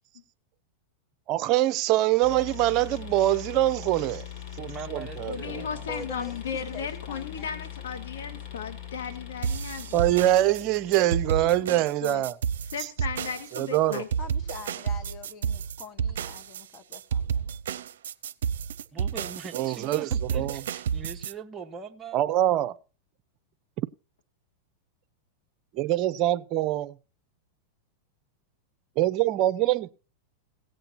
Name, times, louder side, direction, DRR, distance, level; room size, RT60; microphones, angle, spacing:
voice 1, 1.3-4.3 4.6-5.6 9.9-12.3 13.6-14.0 19.5-20.6 22.1-22.8 25.7-26.9 29.0-29.9, right 14 dB, 45° right, 0.7 m, -24 dB
sound 1, 2.2-11.7, left 11 dB, 55° left, 5.1 m, -41 dB
voice 2, 4.7-6.3 18.9-22.2, right 5 dB, 20° right, 1.2 m, -42 dB
voice 3, 5.3-10.1 11.6-11.7 12.0-12.2 12.7-14.1, left 6 dB, 85° left, 1.7 m, -35 dB
voice 4, 5.9-7.9 14.2-17.6, left 3 dB, 35° left, 1.5 m, -44 dB
sound 2, 9.4-21.3, right 7 dB, 80° right, 0.6 m, -31 dB
17.0 x 7.7 x 4.2 m
hypercardioid pair, 120°, 0 cm